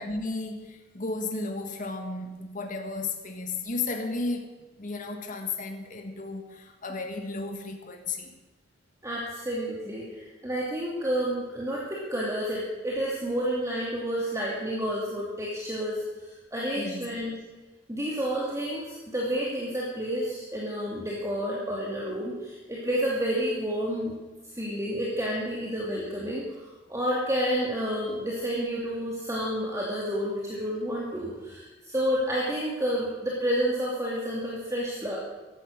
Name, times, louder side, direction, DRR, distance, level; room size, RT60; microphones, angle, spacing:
voice 1, 0.0-4.5 4.8-8.4 16.8-17.1, left 3 dB, 45° left, 4 dB, 1.5 m, -34 dB
voice 2, 9.0-17.3 17.9-24.2 24.5-35.2, equal, 15° right, -5 dB, 2.6 m, -30 dB
15.5 x 12.5 x 6.5 m, 1.2 s
head